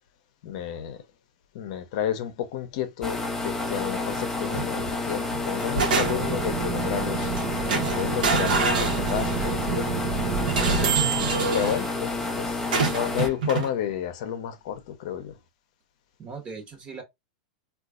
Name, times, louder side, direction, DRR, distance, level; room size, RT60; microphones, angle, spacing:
voice 1, 0.4-1.0 1.5-7.6 7.9-9.9 10.6-12.6 12.9-15.3, left 9 dB, 55° left, 0.7 m, -31 dB
sound 1, 3.0-13.3, left 3 dB, 10° left, 0.5 m, -30 dB
sound 2, 4.5-4.9 5.3-6.4 7.2-7.4 7.7-9.5 10.5-11.8 12.7-13.7, right 4 dB, 85° right, 1.0 m, -27 dB
sound 3, 6.0-12.4, right 7 dB, 60° right, 0.6 m, -29 dB
voice 2, 16.2-17.0, right 4 dB, 25° right, 1.1 m, -39 dB
3.8 x 2.4 x 2.4 m
supercardioid pair, 150°, 4 cm